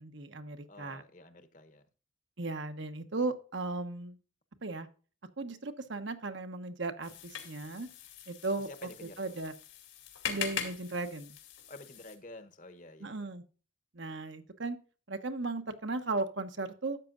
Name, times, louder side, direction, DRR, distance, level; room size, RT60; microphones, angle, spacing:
voice 1, 0.0-1.0 2.4-4.2 4.6-4.9 5.4-7.9 8.3-8.7 9.2-9.5 10.2-11.4 13.0-13.4 13.9-14.8 15.1-17.0, right 3 dB, 65° right, 1.1 m, -36 dB
voice 2, 0.7-1.9 8.5-9.4 11.7-13.3, left 2 dB, 40° left, 1.0 m, -50 dB
sound 1, 7.0-12.2, left 7 dB, 80° left, 2.4 m, -42 dB
12.5 x 8.3 x 2.5 m
head